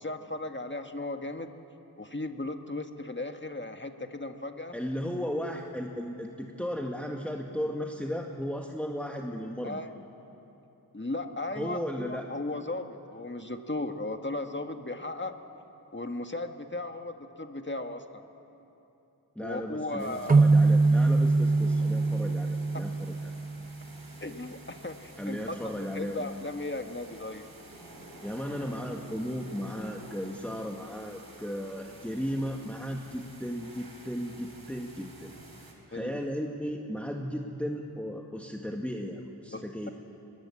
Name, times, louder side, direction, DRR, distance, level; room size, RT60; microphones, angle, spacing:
voice 1, 0.0-1.5 2.0-4.7 9.6-9.9 10.9-15.3 15.9-18.2 19.4-20.4 22.7-22.8 24.2-27.5 35.9-36.1 39.5-39.6, left 2 dB, 30° left, 6 dB, 1.6 m, -36 dB
voice 2, 4.7-9.8 11.6-12.3 19.4-23.3 25.2-26.3 28.2-35.3 35.9-39.9, equal, 5° left, 1 dB, 1.8 m, -35 dB
sound 1, 20.0-35.7, right 1 dB, 65° right, 4.7 m, -50 dB
sound 2, 20.3-23.8, right 3 dB, 25° right, 0.4 m, -23 dB
23.5 x 21.0 x 8.6 m, 3.0 s
wide cardioid pair, 45°, 40 cm